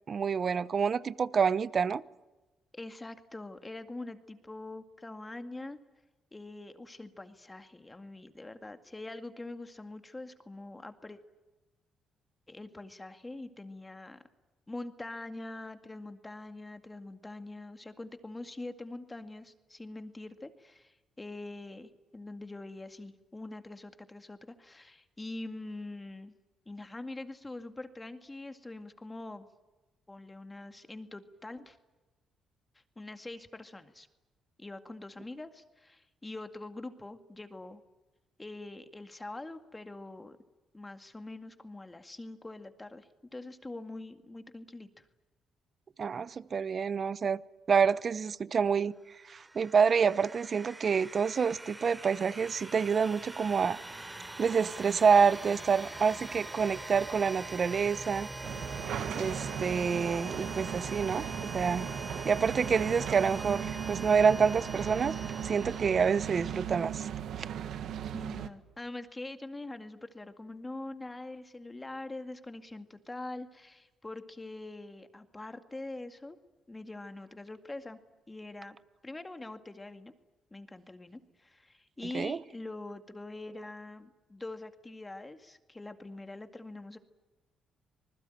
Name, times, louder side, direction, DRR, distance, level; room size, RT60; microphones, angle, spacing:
voice 1, 0.1-2.0 46.0-47.4 47.7-48.9 49.3-53.8 54.4-58.3 59.1-61.9 62.2-65.2 65.4-67.1 82.1-82.4, right 6 dB, 45° right, 0.8 m, -27 dB
voice 2, 2.7-5.8 6.3-11.2 12.5-14.2 14.7-26.3 26.7-29.5 30.1-31.8 33.0-34.1 34.6-37.8 38.4-40.4 40.7-45.1 68.1-76.4 76.7-78.0 78.3-78.8 79.0-80.1 80.5-87.0, left 2 dB, 15° left, 2.1 m, -44 dB
sound 1, 49.1-66.8, right 2 dB, 20° right, 3.3 m, -43 dB
sound 2, 58.4-68.5, right 9 dB, 75° right, 1.5 m, -37 dB
26.5 x 20.5 x 9.2 m
cardioid pair, 90°, 0 cm